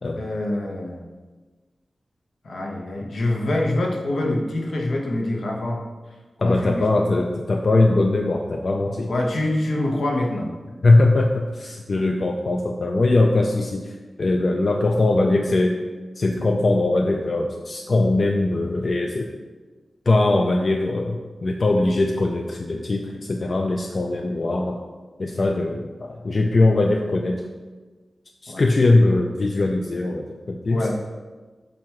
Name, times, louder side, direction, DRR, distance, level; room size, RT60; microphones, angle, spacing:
voice 1, 0.2-1.0 2.4-5.8 6.4-7.2 9.1-10.5 28.5-28.6 30.7-30.9, left 1 dB, 75° left, 0 dB, 1.0 m, -25 dB
voice 2, 6.4-9.1 10.8-15.8 16.2-19.3 20.1-24.8 25.2-27.5 28.4-30.9, left 2 dB, 45° left, 2 dB, 0.4 m, -21 dB
7.5 x 2.6 x 5.8 m, 1.3 s
wide cardioid pair, 125°, 0 cm